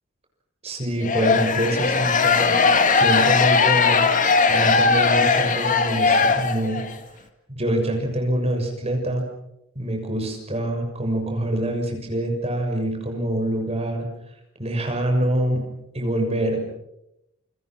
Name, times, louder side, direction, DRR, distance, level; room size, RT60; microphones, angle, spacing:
voice 1, 0.6-2.5 3.0-6.8 7.1-7.2 7.5-9.2 9.7-14.1 14.6-15.6 15.9-16.7, right 1 dB, 30° right, 3 dB, 6.6 m, -25 dB
sound 1, 1.0-6.9, left 4 dB, 40° left, 1.9 m, -19 dB
29.0 x 26.0 x 6.0 m, 0.83 s
head